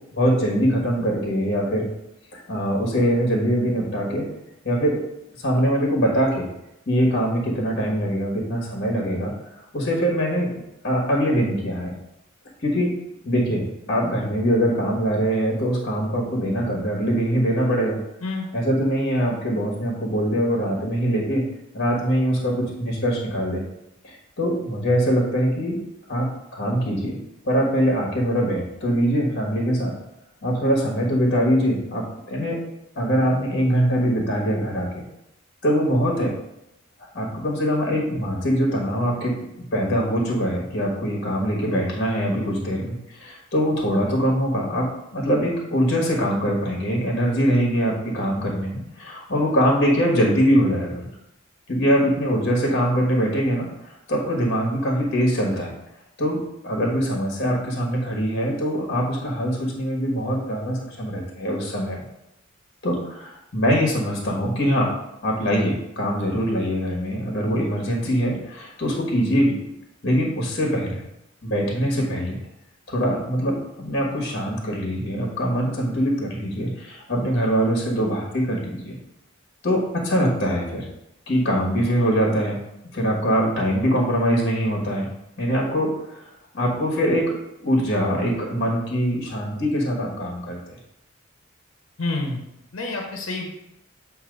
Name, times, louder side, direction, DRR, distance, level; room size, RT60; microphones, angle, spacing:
voice 1, 0.1-1.9 2.3-4.2 4.6-5.0 5.4-6.5 6.9-10.5 10.8-11.9 12.6-12.9 13.2-18.0 18.5-21.4 21.7-23.6 24.0-25.8 26.1-27.2 27.4-29.9 30.4-32.6 32.9-35.0 35.6-36.3 37.1-51.1 51.7-55.7 56.2-62.0 62.8-64.9 65.2-69.6 70.0-71.0 71.4-72.4 72.9-79.0 79.6-80.8 81.3-82.6 82.9-85.1 85.4-86.3 86.5-87.3 87.6-90.8, equal, 50° left, -1 dB, 1.3 m, -23 dB
voice 2, 92.0-92.4 92.7-93.5, left 2 dB, 70° left, 1 dB, 1.1 m, -28 dB
7.3 x 2.8 x 5.2 m, 0.86 s
head